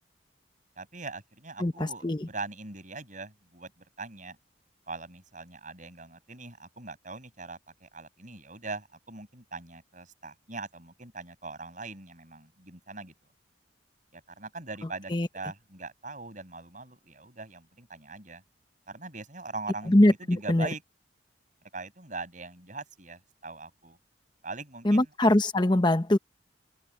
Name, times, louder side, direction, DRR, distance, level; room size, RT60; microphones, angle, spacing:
voice 1, 0.8-3.7 4.0-4.4 4.9-13.1 14.1-18.4 18.9-20.8 21.7-24.0 24.4-25.1, right 3 dB, 40° right, 7.6 m, -41 dB
voice 2, 1.6-2.3 15.1-15.3 19.9-20.7 24.8-26.2, left 1 dB, 25° left, 1.0 m, -22 dB
head